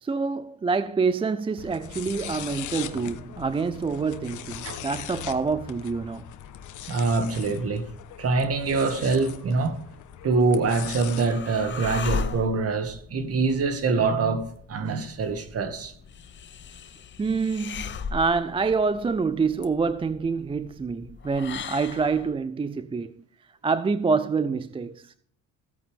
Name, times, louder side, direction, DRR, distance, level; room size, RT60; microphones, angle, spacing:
voice 1, 0.0-6.3 17.2-23.2 23.6-25.1, right 4 dB, 15° right, 0.4 m, -26 dB
sound 1, 1.6-11.3, left 10 dB, 65° left, 1.2 m, -40 dB
voice 2, 6.9-7.9 8.2-9.8 10.2-14.4 14.7-15.9, right 4 dB, 45° right, 2.1 m, -24 dB
sound 2, 10.3-22.4, left 5 dB, 35° left, 0.8 m, -38 dB
16.0 x 8.7 x 3.6 m
cardioid pair, 110°, 33 cm